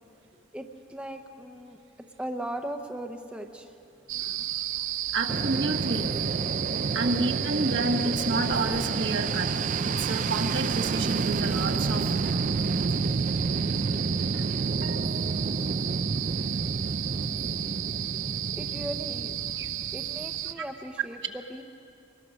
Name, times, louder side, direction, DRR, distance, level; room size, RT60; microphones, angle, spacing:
voice 1, 0.5-1.8 2.2-3.7 18.5-19.3 19.9-21.6, right 1 dB, 5° right, 4 dB, 0.7 m, -38 dB
sound 1, 4.1-20.5, right 12 dB, 85° right, 0.7 m, -33 dB
voice 2, 5.1-6.1 6.9-9.5 9.8-12.1 12.6-13.1 14.8-15.5 19.6-19.7 20.6-20.7, right 2 dB, 65° right, 3 dB, 1.5 m, -30 dB
Fixed-wing aircraft airplane, 5.3-20.5, right 3 dB, 40° right, 0.4 m, -30 dB
24.5 x 20.0 x 6.3 m, 2.7 s
head